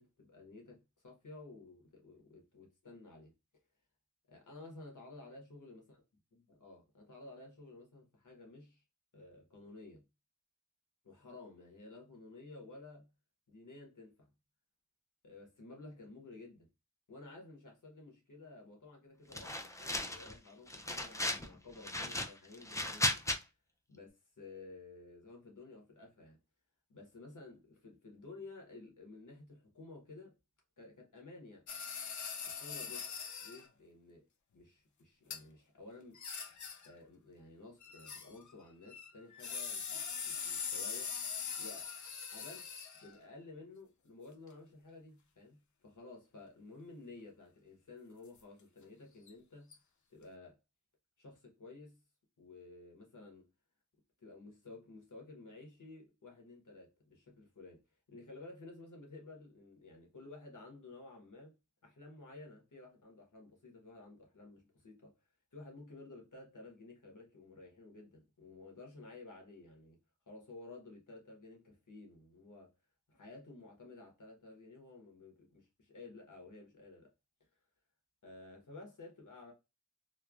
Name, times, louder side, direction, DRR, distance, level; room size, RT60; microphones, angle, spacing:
voice 1, 0.0-3.3 4.3-6.0 6.3-8.8 9.1-10.1 11.0-13.1 13.5-14.3 15.2-16.7 17.1-23.2 23.9-26.4 26.9-30.3 30.8-31.7 32.5-34.3 34.5-36.2 36.8-41.2 41.6-41.9 42.3-42.7 43.0-49.8 50.1-50.6 51.2-52.0 52.4-53.5 54.2-57.8 58.1-61.5 61.8-65.1 65.5-70.0 70.3-72.7 73.1-77.1 78.2-79.5, left 2 dB, 90° left, 1.0 m, -53 dB
sound 1, 19.3-20.3 20.7-21.5 21.8-23.4, left 1 dB, 10° left, 0.3 m, -36 dB
sound 2, 31.7-33.6 35.3-35.4 36.1-36.9 37.8-38.5 38.8-43.2 49.3-49.4 49.7-49.8, left 6 dB, 75° left, 0.5 m, -42 dB
3.0 x 2.2 x 2.3 m
wide cardioid pair, 55°, 30 cm